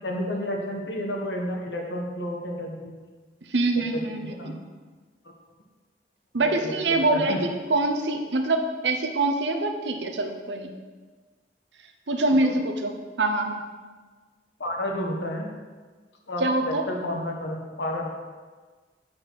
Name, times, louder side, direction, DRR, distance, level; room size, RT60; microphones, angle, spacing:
voice 1, 0.0-2.9 3.7-4.5 6.4-6.8 7.1-7.4 12.4-12.5 14.6-15.5 16.3-18.1, left 1 dB, 90° left, 1 dB, 1.4 m, -31 dB
voice 2, 3.5-4.6 6.3-7.4 7.7-10.7 12.1-12.9 13.2-13.6 16.4-16.9, right 2 dB, 90° right, 5 dB, 0.8 m, -24 dB
7.7 x 4.3 x 6.3 m, 1.4 s
head